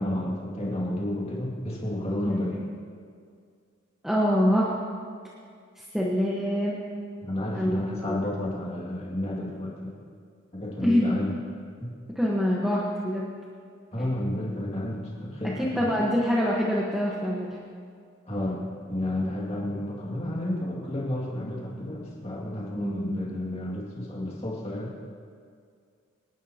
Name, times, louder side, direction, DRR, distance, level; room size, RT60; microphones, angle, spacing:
voice 1, 0.0-2.6 7.2-10.0 10.5-11.4 11.8-11.9 13.9-16.1 18.3-24.9, left 1 dB, 30° left, -4 dB, 2.2 m, -31 dB
voice 2, 4.0-4.7 5.8-6.8 7.5-7.8 8.0-8.2 10.8-11.1 12.1-13.3 15.6-17.5 22.7-23.2, equal, ahead, -6 dB, 1.2 m, -25 dB
27.0 x 11.0 x 2.9 m, 2.2 s
head